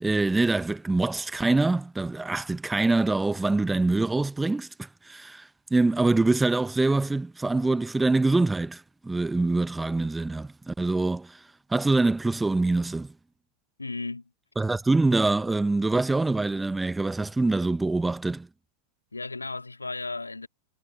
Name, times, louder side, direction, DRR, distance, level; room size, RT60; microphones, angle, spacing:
voice 1, 0.0-11.4 11.7-13.1 14.6-18.5, right 2 dB, 10° right, 1.3 m, -25 dB
voice 2, 13.8-14.3 19.1-20.5, left 3 dB, 80° left, 3.0 m, -35 dB
figure-of-eight pair, 90°, 0 cm